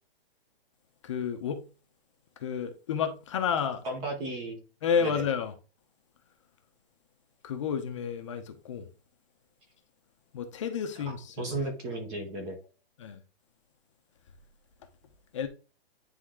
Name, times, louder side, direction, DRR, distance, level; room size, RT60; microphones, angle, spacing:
voice 1, 1.0-1.6 2.4-3.8 4.8-5.5 7.4-8.9 10.3-11.6 13.0-13.2 15.3-15.5, left 7 dB, 30° left, 0.8 m, -31 dB
voice 2, 3.8-4.6 5.0-5.2 11.4-12.6, right 1 dB, 15° right, 0.8 m, -34 dB
9.4 x 3.7 x 3.7 m
hypercardioid pair, 175°, 30 cm